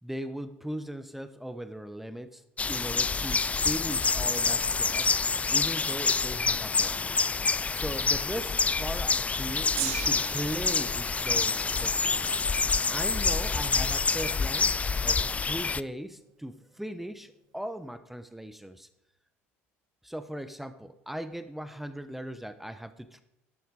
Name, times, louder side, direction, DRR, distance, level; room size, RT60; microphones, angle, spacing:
voice 1, 0.0-2.4 2.7-5.1 5.5-7.2 7.7-12.5 12.9-14.7 15.0-18.9 20.0-23.2, equal, 5° right, 11 dB, 0.9 m, -38 dB
sound 1, 2.6-15.8, left 4 dB, 20° left, 0.4 m, -27 dB
Gong, 9.8-16.1 16.9-17.0, right 11 dB, 65° right, 1.6 m, -42 dB
12.5 x 11.5 x 4.8 m, 0.86 s
hypercardioid pair, 70°, 7 cm